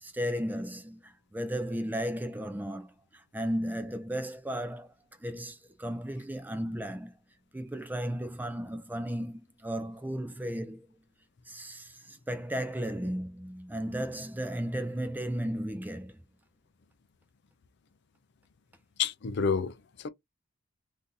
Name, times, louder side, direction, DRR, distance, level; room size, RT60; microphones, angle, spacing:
voice 1, 0.0-4.9 5.2-7.1 7.5-11.0 11.5-16.2, equal, 10° right, 0.4 m, -35 dB
voice 2, 19.0-20.1, left 6 dB, 55° left, 0.4 m, -29 dB
2.7 x 2.6 x 3.8 m
head